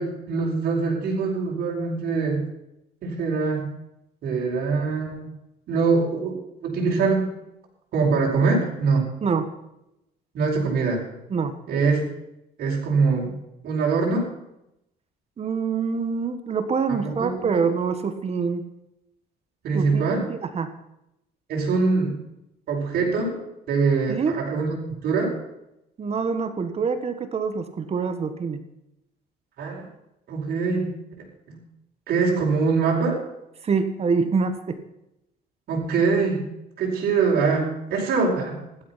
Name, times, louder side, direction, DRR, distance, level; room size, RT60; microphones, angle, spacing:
voice 1, 0.0-2.5 3.0-3.7 4.2-5.3 5.7-6.3 6.6-7.3 7.9-9.1 10.3-11.0 11.7-12.0 12.6-13.4 13.6-14.3 16.9-17.6 19.6-20.3 21.5-22.2 22.7-23.4 23.7-24.7 25.0-25.4 29.6-29.9 30.3-30.9 31.5-31.6 32.1-33.2 35.7-36.5 36.8-38.6, right 4 dB, 65° right, -3 dB, 4.9 m, -23 dB
voice 2, 15.4-18.6 19.7-20.7 24.1-24.4 26.0-28.6 33.6-34.8, right 5 dB, 35° right, 9 dB, 1.6 m, -25 dB
15.5 x 12.0 x 5.8 m, 0.84 s
cardioid pair, 110°, 17 cm